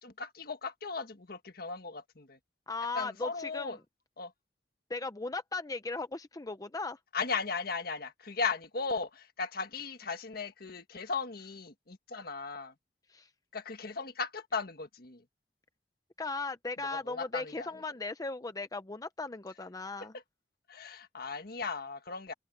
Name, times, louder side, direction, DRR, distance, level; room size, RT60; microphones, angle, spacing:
voice 1, 0.0-2.4 2.9-3.8 4.2-4.3 7.1-12.7 13.5-15.2 16.8-17.7 20.1-20.2 20.7-22.3, left 4 dB, 60° left, 1.6 m, -37 dB
voice 2, 2.7-3.8 4.9-7.0 13.1-13.3 16.2-20.1, left 3 dB, 20° left, 0.7 m, -37 dB
open air
head